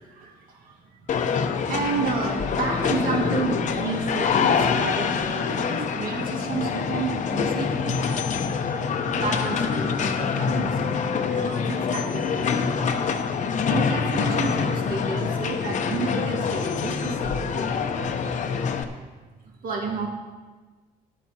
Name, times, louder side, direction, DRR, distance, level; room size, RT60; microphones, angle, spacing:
voice 1, 0.0-8.4 9.1-12.9 13.7-18.1 19.4-20.1, right 4 dB, 55° right, -1 dB, 2.0 m, -31 dB
sound 1, 1.1-18.8, left 6 dB, 45° left, 0.8 m, -25 dB
13.0 x 11.0 x 2.9 m, 1.3 s
cardioid pair, 110°, 17 cm